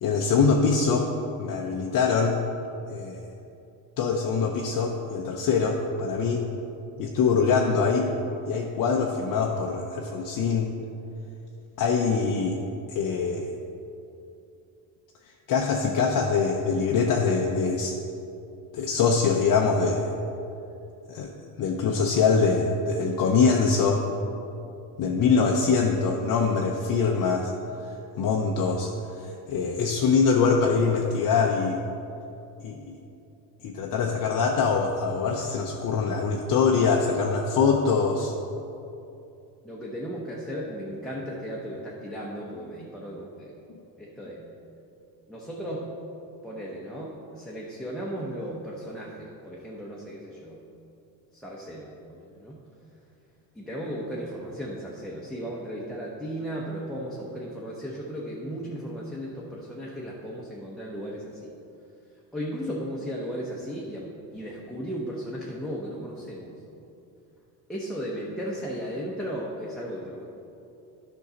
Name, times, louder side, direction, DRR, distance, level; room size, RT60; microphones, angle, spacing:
voice 1, 0.0-1.1 1.4-2.4 2.9-3.2 4.0-6.4 7.0-8.1 8.5-10.7 11.8-12.6 12.9-13.5 15.5-18.0 18.7-20.1 21.1-21.3 21.6-24.0 25.0-27.5 28.2-28.9 29.2-31.8 32.6-33.0 33.6-38.3, left 5 dB, 45° left, 1 dB, 0.7 m, -23 dB
voice 2, 39.6-43.5 44.0-44.4 45.3-45.9 46.4-50.6 51.3-52.6 53.5-61.5 62.3-66.5 67.7-70.3, equal, ahead, -5 dB, 0.9 m, -35 dB
10.0 x 5.5 x 4.0 m, 2.8 s
cardioid pair, 110°, 44 cm